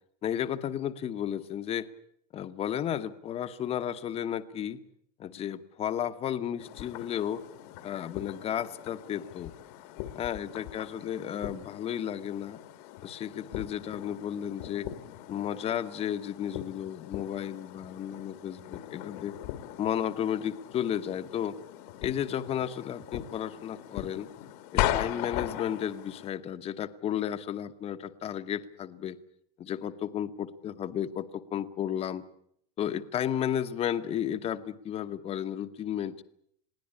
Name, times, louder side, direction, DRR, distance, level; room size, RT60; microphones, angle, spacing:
voice 1, 0.2-1.9 2.3-4.8 5.2-7.4 7.8-9.5 10.1-12.6 13.0-14.9 15.3-19.3 19.8-21.6 22.0-24.3 24.7-29.2 29.6-32.2 32.8-36.2, left 10 dB, 30° left, 11 dB, 1.1 m, -33 dB
sound 1, 6.6-26.3, left 13 dB, 65° left, 1.7 m, -39 dB
21.5 x 16.5 x 9.9 m, 0.71 s
supercardioid pair, 150°, 21 cm